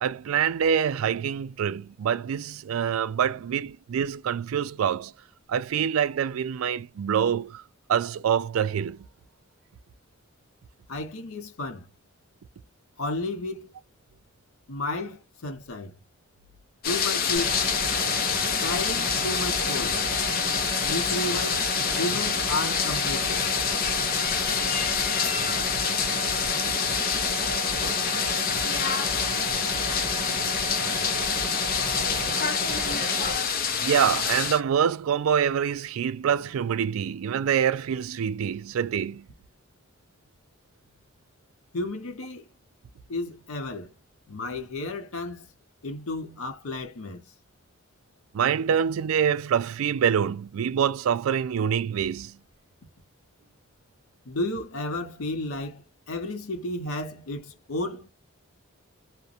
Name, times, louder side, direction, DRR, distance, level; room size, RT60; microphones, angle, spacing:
voice 1, 0.0-5.1 5.5-7.6 7.9-9.0 33.8-39.2 48.3-52.4, right 8 dB, 75° right, 0.3 m, -25 dB
voice 2, 10.9-11.9 13.0-13.7 14.7-15.9 16.8-17.6 18.6-20.0 20.8-21.7 22.0-23.4 41.7-42.5 43.1-43.9 44.3-45.5 45.8-47.2 54.3-58.1, left 2 dB, 80° left, 0.7 m, -32 dB
sound 1, 16.8-34.6, left 7 dB, 45° left, 0.6 m, -26 dB
sound 2, 17.3-33.3, right 3 dB, 35° right, 1.2 m, -34 dB
2.4 x 2.1 x 2.6 m
head